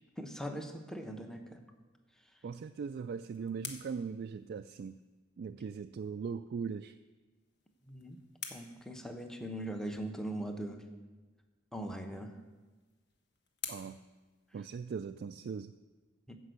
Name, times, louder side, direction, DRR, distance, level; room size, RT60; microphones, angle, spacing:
voice 1, 0.2-1.6 7.9-8.2 8.5-10.8 11.7-12.3 16.3-16.4, right 1 dB, 5° left, 5 dB, 0.9 m, -40 dB
voice 2, 2.4-5.0 5.4-7.0 13.7-14.0 14.5-15.7, right 6 dB, 50° right, 8 dB, 0.3 m, -40 dB
sound 1, 2.7-5.2 7.3-9.7 12.0-15.1, left 6 dB, 55° left, 1.4 m, -50 dB
14.0 x 5.3 x 8.1 m, 1.3 s
head